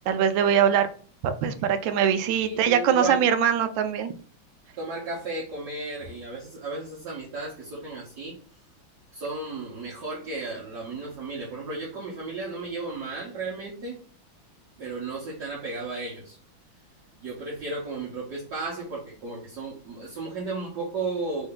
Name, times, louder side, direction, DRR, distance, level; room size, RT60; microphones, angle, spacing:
voice 1, 0.1-0.9 1.2-4.1, right 8 dB, 75° right, 9 dB, 1.3 m, -22 dB
voice 2, 2.4-3.2 4.8-8.4 9.1-14.0 14.8-16.4 17.2-21.5, right 3 dB, 55° right, -6 dB, 1.6 m, -34 dB
4.4 x 2.7 x 3.7 m, 0.43 s
omnidirectional pair, 2.2 m